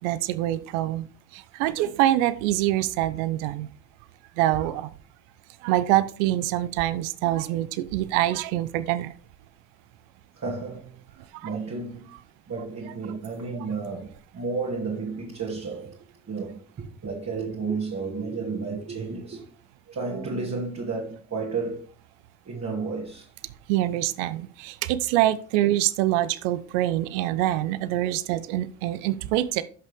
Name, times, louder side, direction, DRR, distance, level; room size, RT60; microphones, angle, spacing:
voice 1, 0.0-1.1 1.3-3.7 4.4-4.9 5.6-9.1 11.4-11.5 23.7-29.6, right 14 dB, 85° right, 0.7 m, -25 dB
voice 2, 10.3-12.1 12.5-16.0 16.3-19.4 19.9-21.9 22.5-23.3 28.4-28.5, right 4 dB, 40° right, 2.5 m, -32 dB
12.5 x 5.6 x 3.5 m
supercardioid pair, 65°, 39 cm